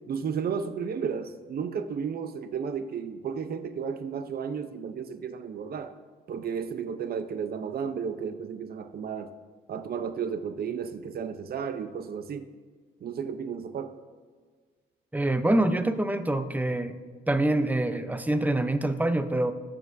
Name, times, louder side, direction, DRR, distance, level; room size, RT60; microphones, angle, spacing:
voice 1, 0.1-6.0 6.3-9.3 9.7-12.5 13.0-14.0, right 6 dB, 50° right, 9 dB, 0.7 m, -33 dB
voice 2, 15.1-17.0 17.3-19.5, right 1 dB, 10° right, 10 dB, 0.7 m, -25 dB
18.5 x 7.3 x 2.7 m, 1.5 s
cardioid pair, 90°, 20 cm